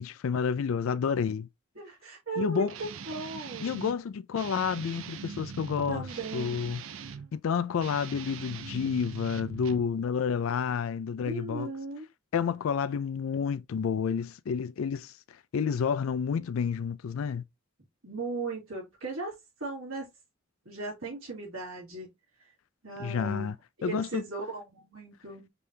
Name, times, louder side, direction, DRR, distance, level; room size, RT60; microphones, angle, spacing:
voice 1, 0.0-1.5 2.4-2.7 3.6-6.1 6.3-6.8 7.3-11.7 12.3-15.1 15.5-17.4 23.0-23.5 23.8-24.2, left 6 dB, 75° left, 0.4 m, -30 dB
voice 2, 1.7-3.8 5.9-6.6 11.2-12.1 18.0-19.3 19.6-20.1 20.6-22.1 22.8-23.5 23.8-25.5, right 3 dB, 90° right, 3.1 m, -37 dB
Guitar, 2.7-4.0 4.3-7.3 7.7-9.9, right 6 dB, 70° right, 0.5 m, -42 dB
5.3 x 3.3 x 2.7 m
head